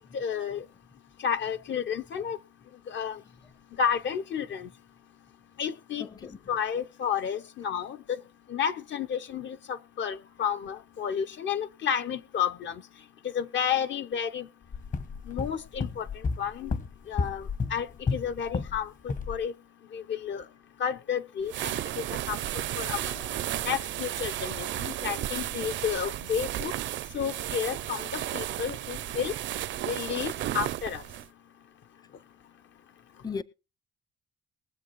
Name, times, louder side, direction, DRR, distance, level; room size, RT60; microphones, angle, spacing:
voice 1, 0.1-0.6 1.2-2.4 2.9-3.2 3.8-4.7 5.6-6.1 6.5-8.2 8.5-12.8 13.3-14.5 15.3-16.1 16.4-16.7 17.1-19.5 19.9-20.4 20.8-22.4 22.8-23.0 23.6-26.7 27.1-29.3 29.9-31.0, left 7 dB, 65° left, 1.0 m, -31 dB
voice 2, 6.0-6.4 22.9-23.3 33.2-33.4, left 5 dB, 20° left, 0.5 m, -38 dB
sound 1, 14.7-18.8 19.1-19.4, left 4 dB, 40° left, 1.0 m, -32 dB
sound 2, 21.4-31.3, right 13 dB, 70° right, 0.5 m, -33 dB
22.0 x 7.9 x 3.1 m
cardioid pair, 90°, 20 cm